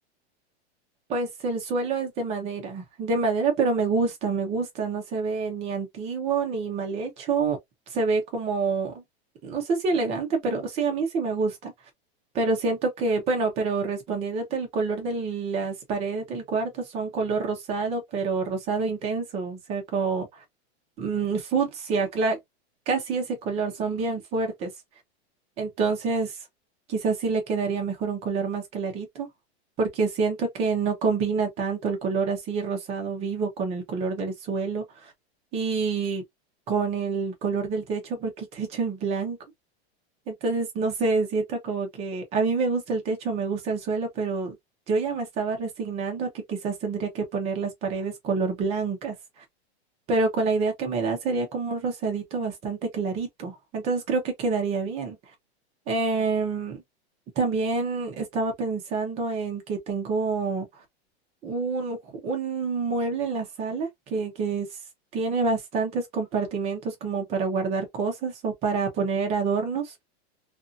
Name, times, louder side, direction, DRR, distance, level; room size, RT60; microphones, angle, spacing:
voice 1, 1.1-7.6 7.9-9.0 9.4-11.7 12.3-20.4 21.0-22.4 22.9-24.7 25.6-26.3 26.9-29.3 29.8-35.1 35.5-36.2 36.7-39.4 40.3-44.6 44.9-49.4 50.1-55.2 55.9-56.8 57.4-60.7 61.4-62.0 62.2-64.7 65.1-69.9, right 4 dB, 20° right, 0.7 m, -27 dB
2.6 x 2.5 x 2.5 m
supercardioid pair, 165°, 33 cm